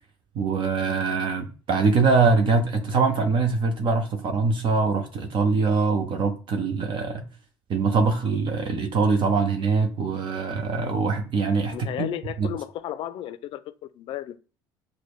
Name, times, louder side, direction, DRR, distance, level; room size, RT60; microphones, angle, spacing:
voice 1, 0.3-7.3 7.7-12.1 12.4-12.5, right 4 dB, 55° right, 0.6 m, -23 dB
voice 2, 11.7-14.4, left 11 dB, 60° left, 0.4 m, -34 dB
6.2 x 2.1 x 2.3 m
hypercardioid pair, 70°, 10 cm